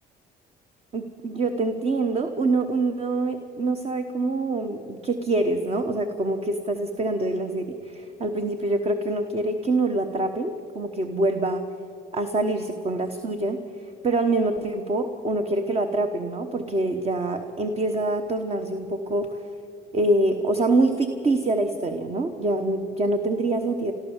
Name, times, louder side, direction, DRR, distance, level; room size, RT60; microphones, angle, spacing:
voice 1, 0.9-11.6 12.1-13.6 14.0-19.4 19.9-23.9, right 2 dB, 35° right, 7 dB, 1.2 m, -25 dB
30.0 x 13.0 x 7.3 m, 2.6 s
cardioid pair, 110°, 17 cm